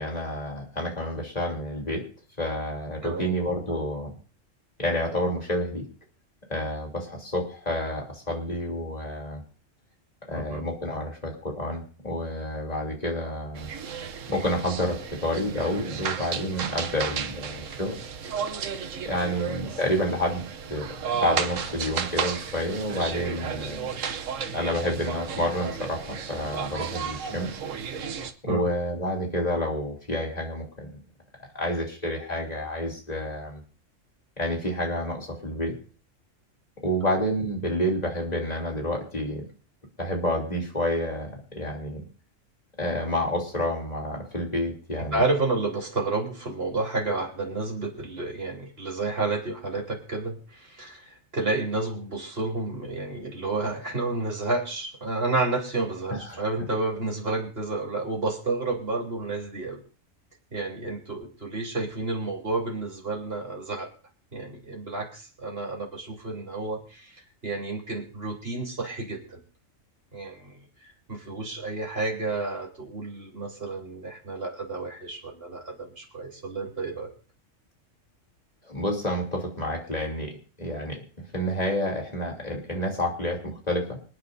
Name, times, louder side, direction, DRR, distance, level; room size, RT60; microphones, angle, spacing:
voice 1, 0.0-2.0 2.4-4.1 4.8-5.8 6.5-9.4 10.3-13.7 14.3-18.0 19.0-20.4 20.7-20.9 21.1-23.9 24.5-27.5 28.4-31.0 31.5-33.6 34.4-35.7 36.8-39.4 40.0-42.0 42.8-45.2 56.1-56.4 78.7-80.3 80.6-81.0 81.3-83.8, equal, 30° left, 0 dB, 3.2 m, -29 dB
voice 2, 10.3-10.6 19.3-19.4 28.5-28.7 45.0-59.8 60.5-63.9 64.3-69.4 70.1-77.1, right 3 dB, 50° right, 0 dB, 3.7 m, -30 dB
sound 1, 13.5-28.3, right 7 dB, 75° right, 1.3 m, -33 dB
26.0 x 9.6 x 2.7 m, 0.39 s
omnidirectional pair, 1.3 m